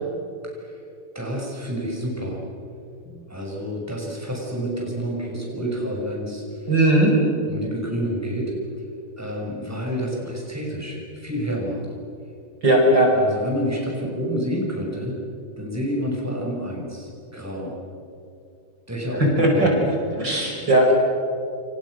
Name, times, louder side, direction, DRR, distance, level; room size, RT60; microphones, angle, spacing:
voice 1, 0.4-0.8 1.1-2.4 3.1-6.7 7.4-8.5 9.2-11.8 13.1-15.2 15.6-17.7 18.9-19.2 19.5-19.8, equal, 5° right, -2 dB, 6.2 m, -29 dB
voice 2, 6.7-7.1 12.6-13.1 19.2-19.7 20.1-20.9, right 1 dB, 55° right, 0 dB, 6.0 m, -17 dB
29.0 x 28.5 x 6.5 m, 2.6 s
omnidirectional pair, 2.3 m